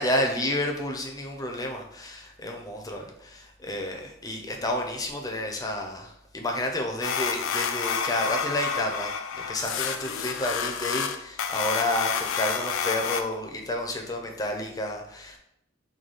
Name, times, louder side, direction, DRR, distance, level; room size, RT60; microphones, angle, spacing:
voice 1, 0.0-15.4, left 1 dB, 20° left, 2 dB, 0.5 m, -30 dB
sound 1, 7.0-13.2, left 7 dB, 65° left, 0.4 m, -29 dB
4.8 x 2.3 x 3.9 m, 0.77 s
head